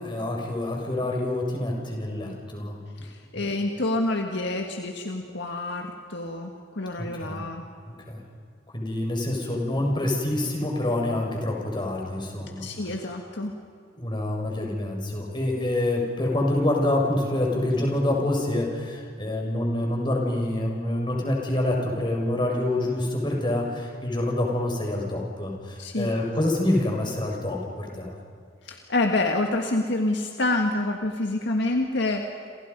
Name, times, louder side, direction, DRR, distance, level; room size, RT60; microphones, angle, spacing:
voice 1, 0.0-2.8 3.3-3.5 7.0-7.4 7.9-8.2 8.7-12.7 14.0-28.1, left 1 dB, 25° left, -1 dB, 5.8 m, -27 dB
voice 2, 3.0-7.6 12.6-13.6 25.8-26.1 28.7-32.3, left 2 dB, 65° left, 3 dB, 1.8 m, -27 dB
28.5 x 28.0 x 5.4 m, 2.2 s
head